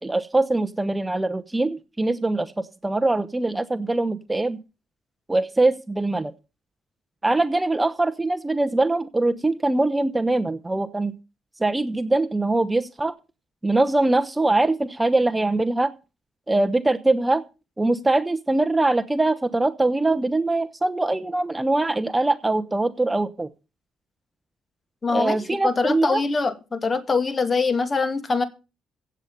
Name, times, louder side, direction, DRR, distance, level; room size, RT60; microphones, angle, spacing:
voice 1, 0.0-4.6 5.3-6.3 7.2-11.1 11.6-13.1 13.6-15.9 16.5-17.4 17.8-23.5 25.1-26.2, right 2 dB, 15° right, 0.9 m, -22 dB
voice 2, 25.0-28.4, left 4 dB, 30° left, 2.2 m, -23 dB
16.0 x 8.2 x 5.4 m
cardioid pair, 90°, 0 cm